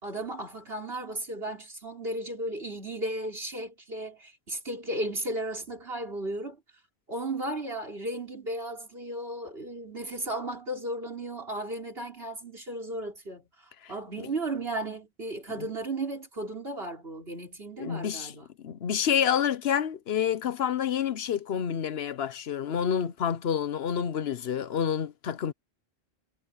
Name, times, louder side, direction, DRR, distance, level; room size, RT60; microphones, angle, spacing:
voice 1, 0.0-6.6 7.1-13.5 13.9-18.5, right 1 dB, 70° right, 4.7 m, -35 dB
voice 2, 17.8-18.3 18.6-25.5, left 8 dB, 75° left, 1.1 m, -28 dB
omnidirectional pair, 1.1 m